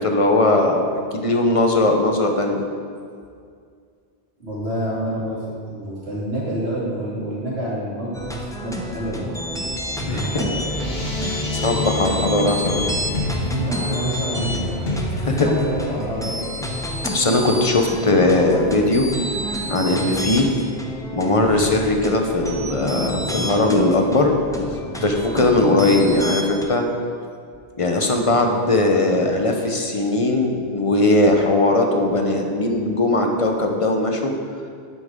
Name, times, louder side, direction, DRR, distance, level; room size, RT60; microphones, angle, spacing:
voice 1, 0.0-2.6 10.1-10.4 11.2-12.9 15.2-15.5 17.1-19.1 19.7-20.5 21.1-24.3 25.0-26.9 27.8-34.3, left 2 dB, 35° left, 3 dB, 1.0 m, -19 dB
voice 2, 4.4-8.2 8.6-9.3 10.0-10.7 13.4-14.9 15.2-16.5 21.3-21.6, right 1 dB, 75° right, -8 dB, 3.2 m, -27 dB
sound 1, 8.1-26.6, equal, 5° left, 0.7 m, -29 dB
sound 2, 9.8-20.3, left 2 dB, 70° left, 1.6 m, -31 dB
9.8 x 9.5 x 3.8 m, 2.2 s
omnidirectional pair, 1.1 m